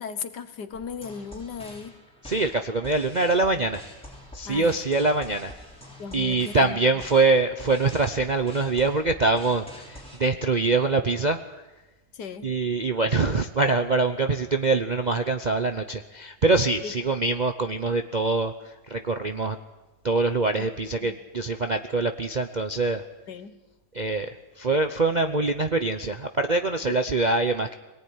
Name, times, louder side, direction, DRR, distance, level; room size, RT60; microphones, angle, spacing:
voice 1, 0.0-1.9 4.4-4.7 6.0-6.8 12.1-12.5 16.8-16.9 20.6-20.7 21.0-21.1 23.3-23.6 26.9-27.0, left 6 dB, 70° left, 11 dB, 1.8 m, -36 dB
sound 1, 0.7-10.2, left 1 dB, 5° left, 6.4 m, -45 dB
voice 2, 2.2-3.8 4.3-5.5 6.1-11.4 12.4-18.5 18.9-19.6 20.0-23.0 23.9-24.3 24.6-27.7, right 3 dB, 40° right, 7 dB, 0.6 m, -24 dB
23.0 x 18.5 x 9.7 m, 1.1 s
omnidirectional pair, 1.9 m